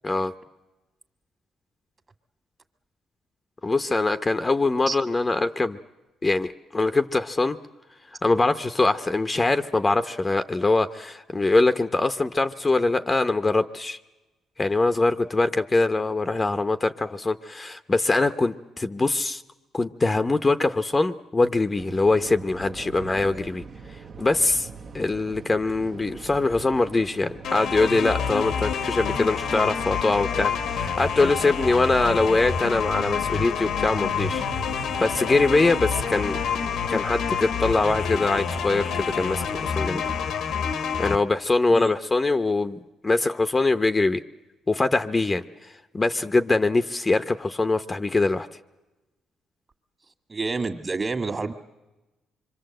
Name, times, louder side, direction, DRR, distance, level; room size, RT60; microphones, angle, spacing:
voice 1, 3.6-5.8 6.2-7.6 8.2-14.0 14.6-19.4 19.7-23.6 24.2-24.7 24.9-34.4 35.0-36.4 36.9-40.0 41.0-44.2 44.7-48.5, left 3 dB, 20° left, 10 dB, 0.8 m, -23 dB
sound 1, 21.8-40.3, right 5 dB, 55° right, 1.0 m, -42 dB
sound 2, 27.4-41.2, left 7 dB, 75° left, 1.2 m, -28 dB
voice 2, 50.3-51.5, right 3 dB, 35° right, 8 dB, 1.9 m, -28 dB
26.0 x 23.5 x 7.8 m, 1.1 s
cardioid pair, 90°, 0 cm